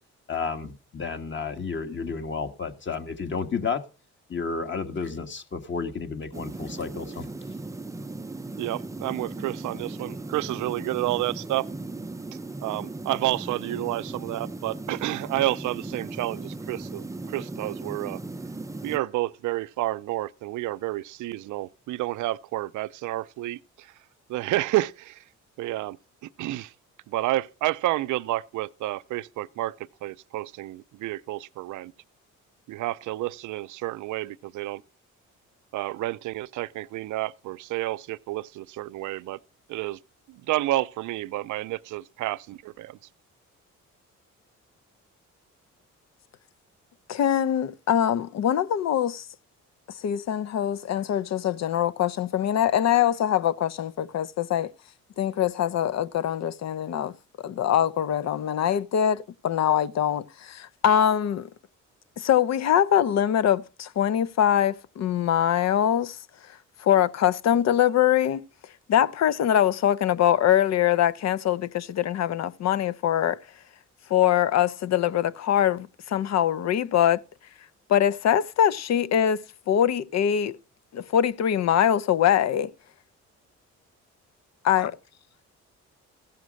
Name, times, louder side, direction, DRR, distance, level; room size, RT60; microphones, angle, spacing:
voice 1, 0.3-3.8 4.3-7.3, left 5 dB, 40° left, 1.7 m, -31 dB
sound 1, 6.3-19.0, right 2 dB, 10° right, 0.6 m, -37 dB
voice 2, 8.6-11.7 12.6-18.2 18.8-23.9 24.3-25.2 25.6-26.0 26.4-26.7 27.1-29.7 30.0-31.9 32.7-34.8 35.7-39.4 39.7-40.0 40.3-43.0, right 16 dB, 75° right, 0.5 m, -30 dB
voice 3, 47.1-49.3 50.0-54.7 55.2-61.5 62.2-68.4 68.9-73.4 74.1-77.2 77.9-80.6 80.9-82.7 84.6-84.9, left 10 dB, 60° left, 0.7 m, -23 dB
15.5 x 5.8 x 6.3 m
cardioid pair, 90°, 30 cm